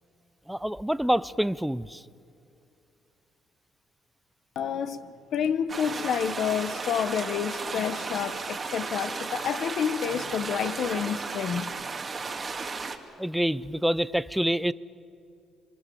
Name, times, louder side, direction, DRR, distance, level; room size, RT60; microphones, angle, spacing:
voice 1, 0.5-2.0 13.2-14.7, equal, 5° right, 18 dB, 0.5 m, -26 dB
voice 2, 4.5-5.1 5.3-11.7, left 8 dB, 65° left, 13 dB, 1.2 m, -29 dB
sound 1, 5.7-13.0, right 4 dB, 30° right, 2.0 m, -34 dB
25.5 x 24.5 x 7.1 m, 2.6 s
cardioid pair, 90°, 0 cm